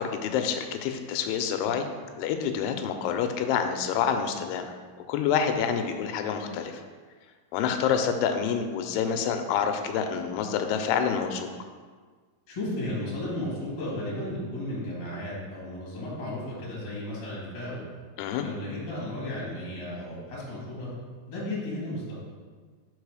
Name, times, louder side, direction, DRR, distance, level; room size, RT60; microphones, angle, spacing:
voice 1, 0.0-1.9 2.2-4.7 5.1-6.8 7.5-11.5 18.2-18.4, left 7 dB, 90° left, 6 dB, 2.6 m, -27 dB
voice 2, 12.5-17.8 18.4-20.9 21.3-22.2, left 1 dB, 40° left, -6 dB, 1.7 m, -34 dB
4.9 x 4.8 x 4.7 m, 1.5 s
omnidirectional pair, 4.6 m